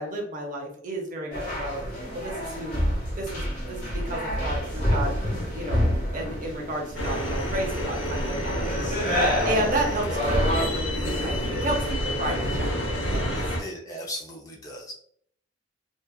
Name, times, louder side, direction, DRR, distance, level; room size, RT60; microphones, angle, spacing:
voice 1, 0.0-2.8 3.2-5.2 5.5-5.9 6.1-13.4, right 1 dB, 45° right, 1 dB, 0.7 m, -32 dB
sound 1, 1.3-10.6, equal, 45° left, 1.1 m, -28 dB
sound 2, 6.9-13.6, equal, 80° left, 0.8 m, -28 dB
voice 2, 13.3-14.9, equal, 20° left, -1 dB, 0.5 m, -38 dB
2.8 x 2.3 x 2.2 m, 0.63 s
head